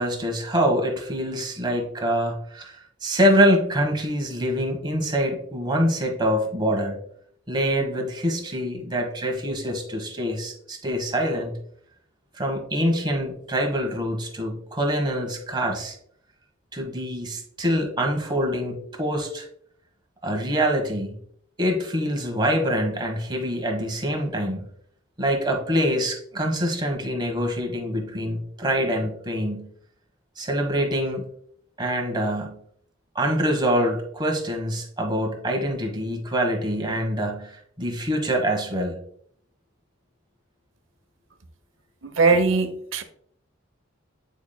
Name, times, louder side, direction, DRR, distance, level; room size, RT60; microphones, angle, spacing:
voice 1, 0.0-7.0 7.5-11.5 12.3-16.0 16.7-19.5 20.2-21.2 21.6-24.7 25.2-29.7 30.4-31.3 31.8-32.6 33.1-39.0, equal, 25° right, 3 dB, 1.2 m, -25 dB
voice 2, 42.0-43.0, right 4 dB, 75° right, 9 dB, 0.8 m, -20 dB
9.3 x 5.1 x 2.2 m, 0.66 s
head